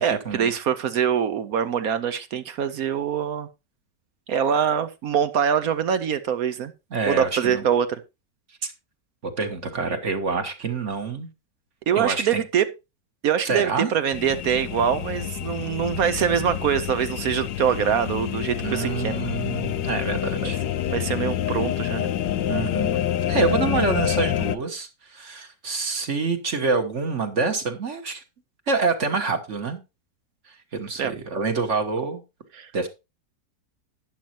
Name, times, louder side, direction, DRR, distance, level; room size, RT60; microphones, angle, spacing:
voice 1, 0.0-3.5 4.3-6.7 7.1-8.0 11.9-12.7 13.2-19.2 20.9-22.1 31.0-31.1 32.5-32.7, right 8 dB, 65° right, 1.0 m, -24 dB
voice 2, 6.9-7.6 8.6-8.7 9.2-11.3 11.9-12.4 13.4-13.9 18.6-20.6 22.5-23.0 23.3-28.2 28.7-29.8 30.5-32.2 32.7-32.9, right 4 dB, 45° right, 1.5 m, -26 dB
sound 1, 14.1-24.6, left 11 dB, 90° left, 1.4 m, -27 dB
12.0 x 9.1 x 2.9 m
omnidirectional pair, 1.9 m